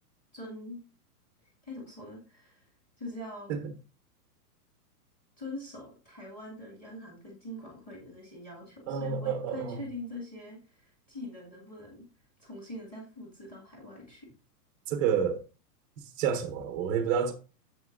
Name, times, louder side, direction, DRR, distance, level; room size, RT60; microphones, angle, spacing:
voice 1, 0.3-0.8 1.6-2.7 3.0-3.5 5.4-12.1 12.4-14.3, left 1 dB, 15° left, 2.1 m, -43 dB
voice 2, 8.9-9.8 14.9-15.4 16.0-17.3, right 7 dB, 15° right, 0.6 m, -29 dB
9.5 x 7.1 x 2.6 m
hypercardioid pair, 170°, 48 cm